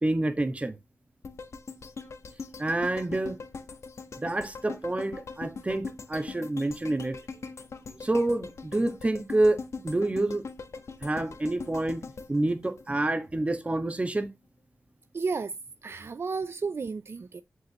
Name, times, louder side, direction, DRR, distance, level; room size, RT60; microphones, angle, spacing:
voice 1, 0.0-0.7 2.6-3.4 4.2-7.2 8.0-10.5 11.0-12.0 12.3-14.3, right 2 dB, 30° right, 1.6 m, -28 dB
sound 1, 1.2-13.4 13.8-13.9, left 4 dB, 80° left, 1.5 m, -42 dB
voice 2, 15.1-15.5 15.8-17.4, right 4 dB, 60° right, 0.6 m, -32 dB
8.2 x 7.8 x 3.1 m
cardioid pair, 65°, 5 cm